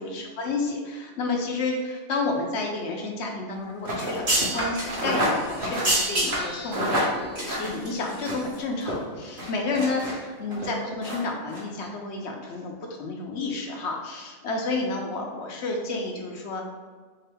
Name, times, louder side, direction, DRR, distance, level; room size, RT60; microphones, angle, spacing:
voice 1, 0.0-16.7, left 3 dB, 65° left, 2 dB, 0.8 m, -30 dB
sound 1, 3.8-8.5 8.8-8.9 9.4-10.1 10.5-10.7 11.0-11.2 11.5-11.6, right 1 dB, 40° right, 1.3 m, -27 dB
3.8 x 3.6 x 3.4 m, 1.5 s
omnidirectional pair, 1.4 m